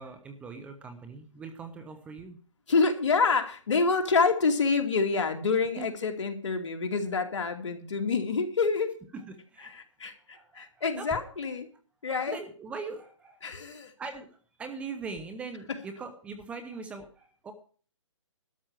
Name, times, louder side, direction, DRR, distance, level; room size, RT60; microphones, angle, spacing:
voice 1, 0.0-2.4 5.7-5.9 9.1-9.8 10.3-11.1 12.0-13.4 14.0-17.5, right 4 dB, 5° right, 8 dB, 0.8 m, -41 dB
voice 2, 2.7-9.0 9.7-11.7 12.0-12.4 13.4-13.9, left 4 dB, 65° left, 5 dB, 2.5 m, -27 dB
12.5 x 6.1 x 8.9 m, 0.41 s
hypercardioid pair, 160°, 16 cm